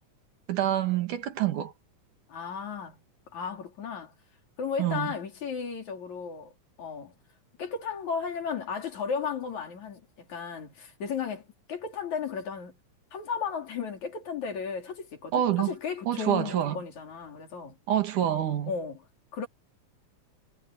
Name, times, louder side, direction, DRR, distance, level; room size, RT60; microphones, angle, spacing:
voice 1, 0.5-1.7 4.8-5.1 15.3-15.7 16.1-16.8 17.9-18.7, right 11 dB, 85° right, 3.4 m, -26 dB
voice 2, 2.3-3.0 3.3-4.1 4.6-6.5 6.8-7.1 7.6-10.0 10.3-12.7 13.1-17.8 18.7-19.0 19.3-19.5, left 6 dB, 70° left, 4.7 m, -34 dB
omnidirectional pair, 3.5 m